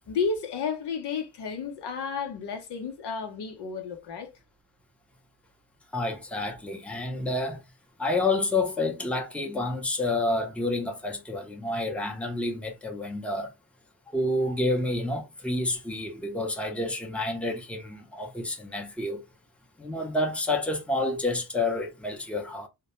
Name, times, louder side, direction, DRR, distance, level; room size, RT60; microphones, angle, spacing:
voice 1, 0.1-4.3, left 5 dB, 75° left, 0.7 m, -32 dB
voice 2, 5.9-7.6 8.0-13.5 14.1-19.2 19.8-22.7, left 2 dB, 5° left, 0.6 m, -29 dB
2.2 x 2.1 x 2.9 m
cardioid pair, 85°, 40 cm